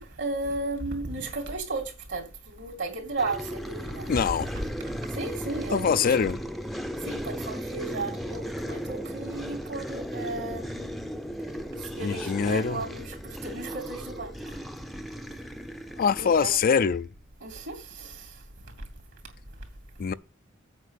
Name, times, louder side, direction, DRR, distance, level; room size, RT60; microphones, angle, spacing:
voice 1, 0.0-4.1 5.1-6.1 7.0-11.2 11.8-14.6 16.2-16.6 17.4-18.4 18.8-18.9, right 2 dB, 65° right, 3.1 m, -35 dB
sound 1, 3.2-17.1, equal, ahead, 0.6 m, -36 dB
voice 2, 4.1-4.5 5.7-6.4 12.0-12.8 16.0-17.1 20.0-20.1, left 6 dB, 45° left, 0.4 m, -24 dB
8.2 x 5.3 x 6.7 m
head